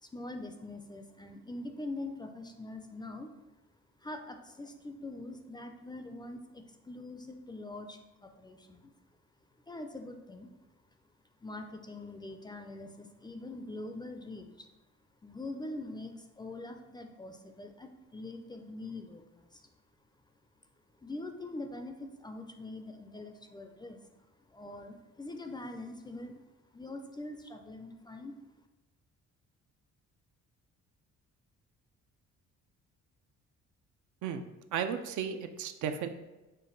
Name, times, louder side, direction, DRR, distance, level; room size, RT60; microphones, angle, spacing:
voice 1, 0.0-3.3 4.0-8.9 9.7-10.5 11.4-14.7 15.2-19.6 21.0-24.0 24.5-26.4 26.7-28.3, left 2 dB, 15° left, 5 dB, 0.3 m, -43 dB
voice 2, 34.7-36.1, right 8 dB, 75° right, 8 dB, 0.5 m, -34 dB
5.1 x 2.2 x 3.8 m, 1.1 s
cardioid pair, 90°, 30 cm